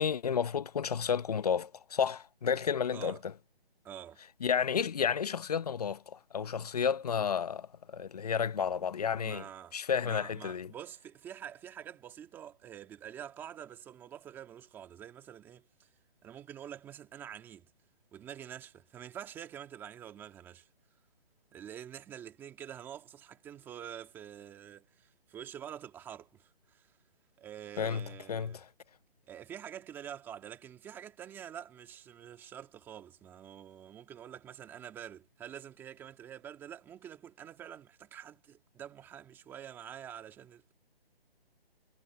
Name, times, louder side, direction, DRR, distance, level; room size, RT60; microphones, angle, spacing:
voice 1, 0.0-3.2 4.4-9.4 9.7-10.7 27.8-28.6, left 7 dB, 40° left, 0.9 m, -31 dB
voice 2, 2.9-3.2 3.8-4.2 8.8-8.9 9.1-15.9 16.2-17.7 18.1-20.7 21.5-26.9 27.4-28.6 29.3-40.7, right 9 dB, 5° right, 1.8 m, -47 dB
hypercardioid pair, 170°, 31 cm